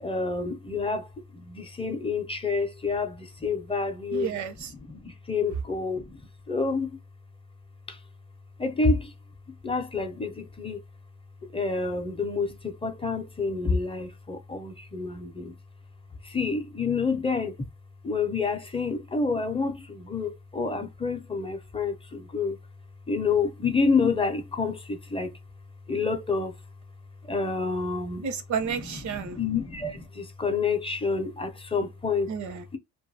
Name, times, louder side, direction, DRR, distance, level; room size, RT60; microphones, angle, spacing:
voice 1, 0.0-4.4 4.7-6.2 6.5-7.0 7.9-8.0 8.6-9.1 9.6-10.8 11.4-15.5 16.2-17.6 18.0-22.6 23.1-25.3 25.9-26.6 27.2-28.2 28.6-32.3, left 4 dB, 20° left, 0.5 m, -28 dB
voice 2, 4.1-4.7 28.2-29.4 32.3-32.6, right 6 dB, 70° right, 0.8 m, -31 dB
2.6 x 2.3 x 2.6 m
cardioid pair, 90°, 30 cm